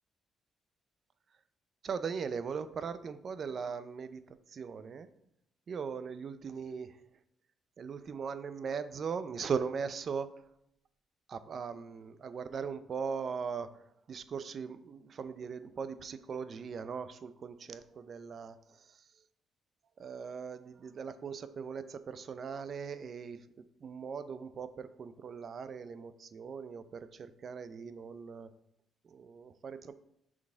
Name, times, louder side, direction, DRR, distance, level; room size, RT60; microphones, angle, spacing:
voice 1, 1.8-5.1 5.7-7.0 7.8-10.3 11.3-13.7 14.1-19.0 20.0-28.5 29.0-29.9, right 6 dB, 50° right, 12 dB, 0.5 m, -39 dB
6.0 x 4.1 x 4.5 m, 0.75 s
cardioid pair, 90°, 0 cm